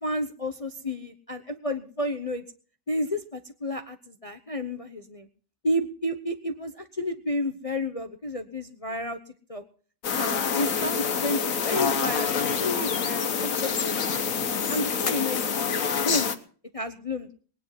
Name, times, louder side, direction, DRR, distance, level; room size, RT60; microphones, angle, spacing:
voice 1, 0.0-2.4 2.9-5.3 5.6-9.2 9.5-9.6 10.1-14.2 14.5-15.5 16.0-16.3 16.7-17.3, left 1 dB, 30° left, 8 dB, 0.7 m, -31 dB
sound 1, 10.0-16.4, left 6 dB, 55° left, 1.5 m, -27 dB
20.0 x 9.7 x 5.8 m, 0.43 s
omnidirectional pair, 1.8 m